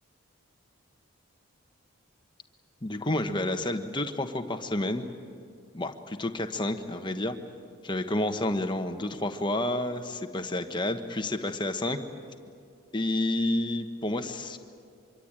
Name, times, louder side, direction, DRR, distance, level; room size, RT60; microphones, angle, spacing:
voice 1, 2.8-5.0 5.7-7.4 7.8-12.0 12.9-14.6, left 1 dB, 20° left, 6 dB, 1.2 m, -30 dB
25.5 x 23.5 x 8.9 m, 2.3 s
head